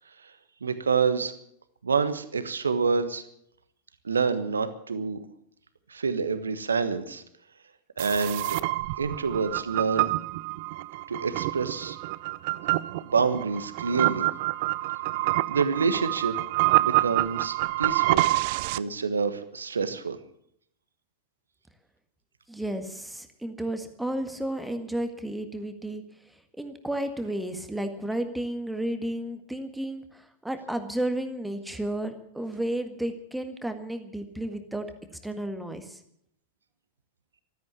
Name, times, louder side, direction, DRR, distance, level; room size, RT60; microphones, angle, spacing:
voice 1, 0.6-1.3 1.8-3.2 4.0-5.2 5.9-7.2 8.0-8.6 9.0-10.1 11.1-12.0 13.0-14.3 15.5-16.4 16.8-18.3 18.8-20.2, right 5 dB, 75° right, 11 dB, 1.4 m, -27 dB
sound 1, 8.0-18.8, right 19 dB, 50° right, 0.5 m, -27 dB
voice 2, 22.5-26.0 26.6-34.9 35.2-36.0, right 1 dB, 5° right, 7 dB, 1.7 m, -32 dB
14.5 x 13.5 x 7.1 m, 0.70 s
figure-of-eight pair, 90°, 0 cm